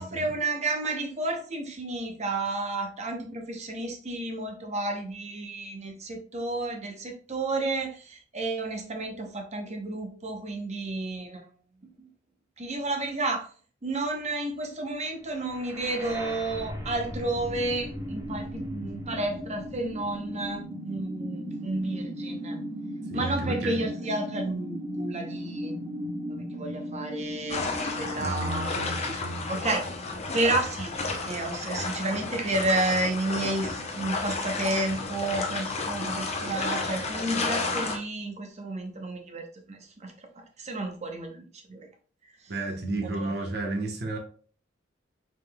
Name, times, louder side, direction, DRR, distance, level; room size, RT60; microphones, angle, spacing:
voice 1, 0.0-11.5 12.0-12.1 12.6-13.5 13.8-22.6 23.1-25.7 26.3-27.6 28.0-28.7 29.5-29.9 30.3-30.9 31.2-41.9 43.0-43.3, right 2 dB, 35° right, 0.8 m, -31 dB
sound 1, 15.4-29.3, equal, 15° right, 1.1 m, -37 dB
voice 2, 23.1-23.8 28.2-29.6 42.5-44.2, right 2 dB, 55° right, 1.0 m, -32 dB
sound 2, 27.5-38.0, left 3 dB, 35° left, 0.7 m, -32 dB
5.0 x 3.8 x 2.3 m
head